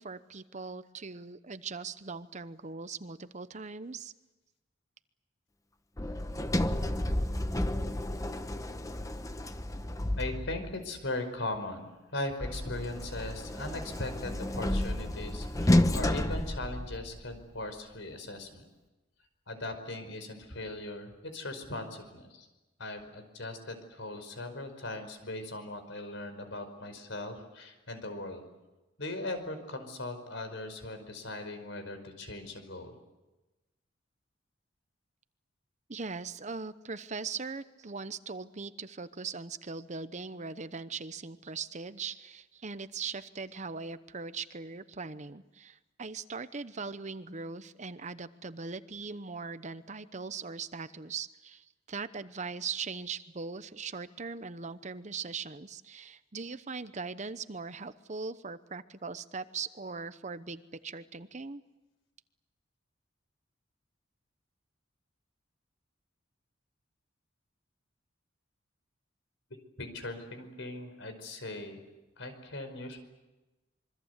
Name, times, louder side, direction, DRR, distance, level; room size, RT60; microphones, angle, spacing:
voice 1, 0.0-4.1 35.9-61.6, right 4 dB, 40° right, 13 dB, 0.9 m, -40 dB
Sliding door, 6.0-10.8 12.4-17.3, left 1 dB, 15° left, 1.0 m, -31 dB
voice 2, 10.2-18.7 19.5-22.5 22.8-28.4 29.0-33.0 69.8-71.8 72.2-73.0, left 2 dB, 70° left, 8 dB, 5.1 m, -39 dB
26.5 x 24.0 x 8.2 m, 1.1 s
head